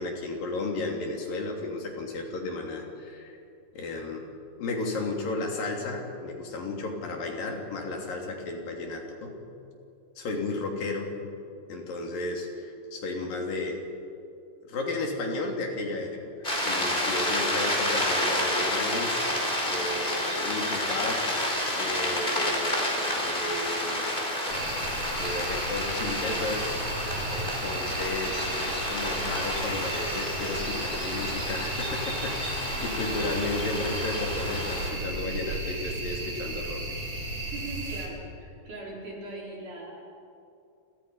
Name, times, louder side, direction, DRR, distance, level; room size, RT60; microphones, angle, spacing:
voice 1, 0.0-3.4 3.7-4.3 4.6-9.4 10.2-11.1 11.7-13.8 14.6-21.3 21.8-22.7 23.2-24.1 25.2-26.8 27.3-36.8, left 2 dB, 90° left, 1 dB, 4.8 m, -33 dB
sound 1, 16.4-34.9, left 1 dB, 15° left, 4.4 m, -30 dB
sound 2, 24.5-38.1, right 2 dB, 50° right, 5.7 m, -34 dB
voice 2, 37.5-40.0, right 2 dB, 65° right, -3 dB, 6.7 m, -40 dB
30.0 x 25.5 x 5.6 m, 2.6 s
omnidirectional pair, 3.8 m